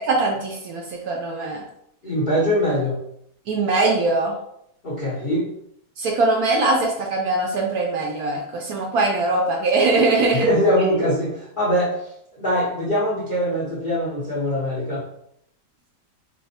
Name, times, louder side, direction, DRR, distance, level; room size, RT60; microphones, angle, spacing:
voice 1, 0.0-1.6 3.5-4.3 6.0-10.5, right 3 dB, 65° right, 0 dB, 1.0 m, -21 dB
voice 2, 2.0-3.0 4.8-5.5 10.4-12.1 12.4-15.0, equal, 50° left, -7 dB, 0.6 m, -22 dB
3.3 x 2.0 x 4.1 m, 0.73 s
omnidirectional pair, 1.9 m